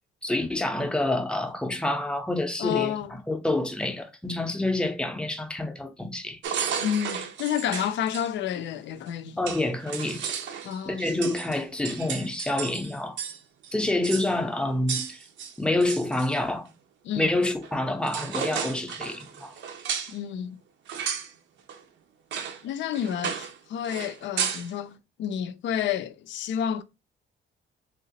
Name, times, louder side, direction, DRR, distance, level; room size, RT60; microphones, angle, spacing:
voice 1, 0.2-6.4 9.4-10.2 10.9-13.2 13.7-15.2 15.6-16.7 17.2-19.5, left 2 dB, 5° left, 0.5 m, -27 dB
voice 2, 2.6-3.1 6.8-9.4 10.6-11.1 17.0-17.3 20.1-20.6 22.6-26.8, left 9 dB, 80° left, 0.4 m, -30 dB
sound 1, 6.4-8.3 9.1-9.2 9.5-13.4 13.6-13.7 14.0-14.3 14.9-16.4 17.6-17.8 18.0-20.2 20.9-21.3 21.7-21.8 22.3-22.6 22.9-23.6 23.8-24.7, right 7 dB, 85° right, 0.6 m, -33 dB
3.5 x 2.9 x 2.8 m
cardioid pair, 145°, 19 cm